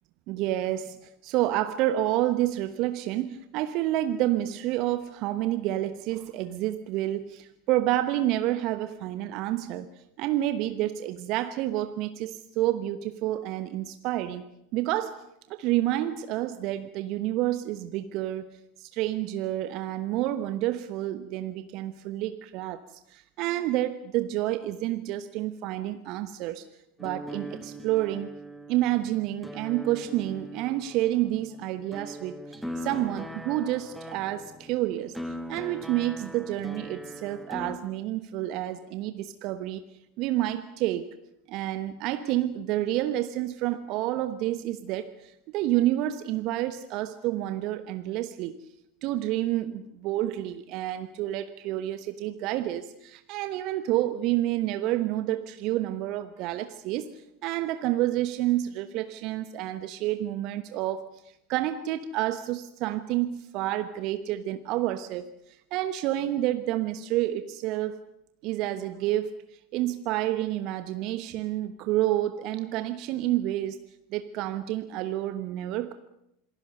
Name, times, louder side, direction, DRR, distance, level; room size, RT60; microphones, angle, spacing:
voice 1, 0.3-1.0 1.2-9.9 10.2-14.4 14.7-18.5 18.8-22.8 23.1-26.6 27.0-28.3 28.7-35.1 35.5-39.8 40.2-41.1 41.5-48.6 49.0-61.1 61.5-65.3 65.7-68.0 68.4-73.8 74.1-75.9, right 14 dB, 50° right, 11 dB, 1.1 m, -29 dB
sound 1, 27.0-37.8, equal, ahead, 2.3 m, -41 dB
27.0 x 20.5 x 6.8 m, 0.78 s
figure-of-eight pair, 80°, 0 cm